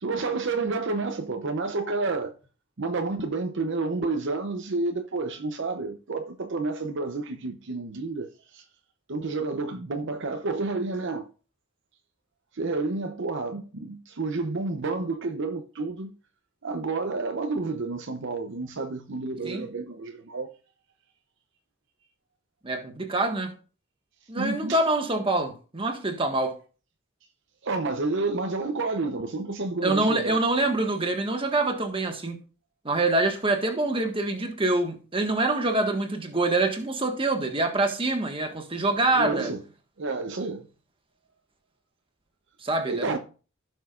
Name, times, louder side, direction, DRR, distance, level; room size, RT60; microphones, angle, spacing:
voice 1, 0.0-2.3 2.8-8.6 9.1-11.3 12.5-16.1 16.6-20.5 24.4-24.8 27.6-30.4 39.1-39.6 40.0-40.7 42.9-43.2, right 3 dB, 60° right, 0.7 m, -30 dB
voice 2, 22.6-23.5 24.3-26.6 29.8-32.4 32.8-39.5 42.6-43.2, right 2 dB, 25° right, 1.6 m, -25 dB
15.5 x 6.3 x 2.5 m
head